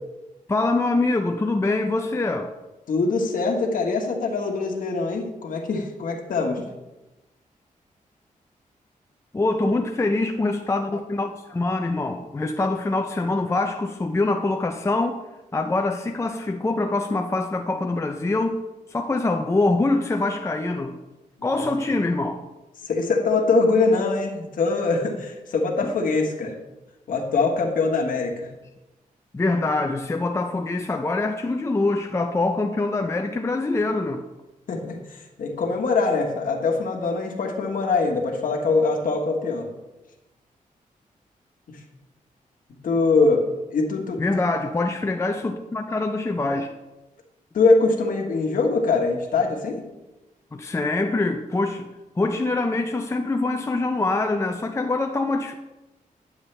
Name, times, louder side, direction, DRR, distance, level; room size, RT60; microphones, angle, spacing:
voice 1, 0.5-2.5 9.3-15.2 15.5-18.6 18.9-21.0 21.4-22.4 25.8-25.9 29.3-34.2 43.1-43.2 44.2-46.7 50.5-51.9 52.2-55.5, left 2 dB, 20° left, 0.5 m, -24 dB
voice 2, 2.9-6.7 21.4-21.7 22.8-26.5 27.1-28.5 34.7-39.7 41.7-41.8 42.8-43.5 43.7-44.3 47.5-49.8, left 3 dB, 75° left, 1.4 m, -23 dB
9.8 x 7.1 x 3.3 m
cardioid pair, 90°, 14 cm